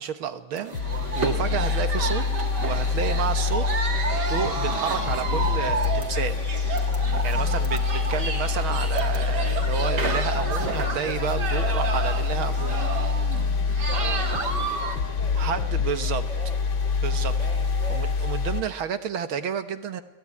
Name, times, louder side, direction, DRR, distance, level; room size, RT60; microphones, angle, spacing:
voice 1, 0.0-2.2 2.6-3.7 4.3-6.4 7.2-12.9 15.4-16.3 17.0-17.3 17.9-20.0, right 7 dB, 75° right, 10 dB, 2.1 m, -30 dB
sound 1, 0.6-15.0, right 4 dB, 50° right, 3.0 m, -31 dB
sound 2, 0.7-18.6, left 5 dB, 70° left, 2.7 m, -26 dB
voice 2, 13.9-16.6 17.3-18.1, equal, 35° left, 3 dB, 5.6 m, -42 dB
30.0 x 19.5 x 9.7 m, 0.98 s
omnidirectional pair, 2.3 m